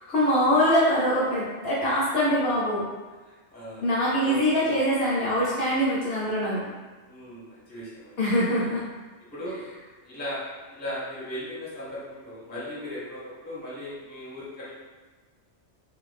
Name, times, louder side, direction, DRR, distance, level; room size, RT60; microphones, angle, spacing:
voice 1, 0.1-2.8 3.8-6.6 8.2-8.9, equal, 60° left, -6 dB, 0.8 m, -23 dB
voice 2, 3.5-3.9 4.2-4.8 7.1-8.2 8.6-8.7 9.3-9.6 10.0-10.4 10.7-14.7, equal, 10° left, -8 dB, 0.6 m, -37 dB
2.5 x 2.2 x 3.1 m, 1.3 s
omnidirectional pair, 1.3 m